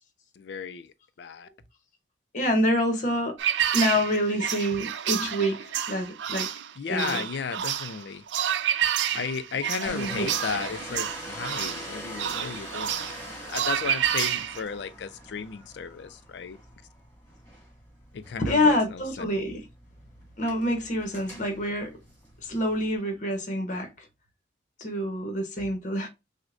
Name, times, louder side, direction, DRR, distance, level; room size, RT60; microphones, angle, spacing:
voice 1, 0.3-1.5 6.8-8.3 9.1-16.6 18.1-19.2, left 6 dB, 65° left, 0.4 m, -35 dB
voice 2, 2.3-3.3 3.7-6.5 6.9-7.3 9.8-10.3 18.4-19.7 20.4-21.9 22.4-24.1 24.8-26.1, left 1 dB, 40° left, 0.8 m, -27 dB
sound 1, 3.4-14.6, right 10 dB, 70° right, 0.4 m, -29 dB
Domestic sounds home sounds, 9.8-23.0, equal, 10° left, 1.7 m, -43 dB
6.2 x 2.1 x 2.4 m
head